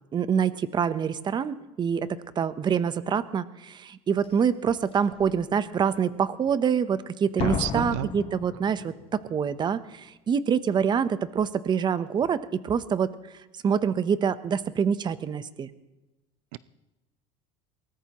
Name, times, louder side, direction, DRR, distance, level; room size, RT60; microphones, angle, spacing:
voice 1, 0.1-13.1 13.6-15.7, right 7 dB, 30° right, 13 dB, 0.8 m, -26 dB
Slam, 4.2-4.3 4.9-5.3 7.4-9.3 9.5-9.6, left 8 dB, 35° left, 1.0 m, -33 dB
voice 2, 7.4-8.1 16.5-16.6, right 16 dB, 80° right, 16 dB, 0.6 m, -31 dB
22.5 x 18.5 x 3.0 m, 1.0 s
supercardioid pair, 120°, 15 cm